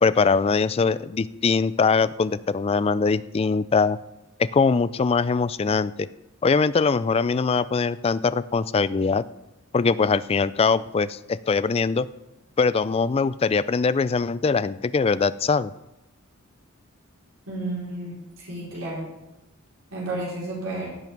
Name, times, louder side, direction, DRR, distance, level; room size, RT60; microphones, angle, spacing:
voice 1, 0.0-4.0 4.4-6.1 6.4-9.2 9.7-12.1 12.6-15.7, left 4 dB, 30° left, 16 dB, 0.3 m, -22 dB
voice 2, 17.5-18.1 18.4-19.1 19.9-20.9, right 2 dB, 80° right, -5 dB, 4.4 m, -31 dB
16.5 x 5.9 x 5.3 m, 0.94 s
head